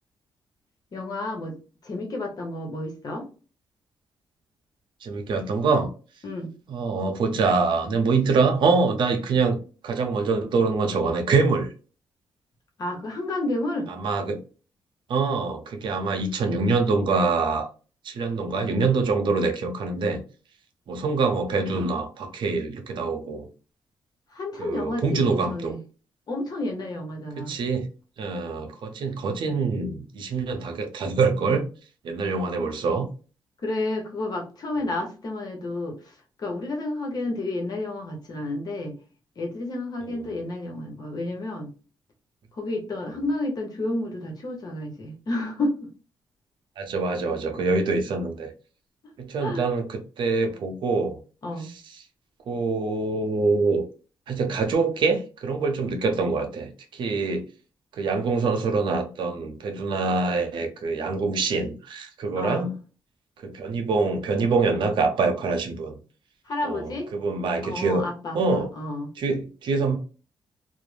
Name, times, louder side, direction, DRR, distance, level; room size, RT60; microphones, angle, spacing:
voice 1, 0.9-1.6 1.8-3.3 6.2-6.5 12.8-13.9 24.3-25.8 26.3-27.6 33.6-39.0 39.4-41.7 42.6-45.9 49.4-49.6 51.4-51.7 62.4-62.7 66.5-67.1 67.6-69.1, left 2 dB, 50° left, 2 dB, 0.9 m, -31 dB
voice 2, 5.0-5.9 6.7-9.6 9.8-11.7 14.0-14.4 15.1-17.7 18.0-20.2 20.9-23.5 24.6-25.7 27.4-27.9 28.2-31.7 32.0-33.1 40.0-40.3 46.8-48.5 49.2-51.2 51.6-52.0 52.5-53.8 54.3-57.5 57.9-62.7 63.4-66.0 66.6-68.0 68.3-68.7 69.2-70.0, right 4 dB, 70° right, 5 dB, 0.6 m, -25 dB
2.4 x 2.0 x 3.2 m, 0.35 s
cardioid pair, 80°, 8 cm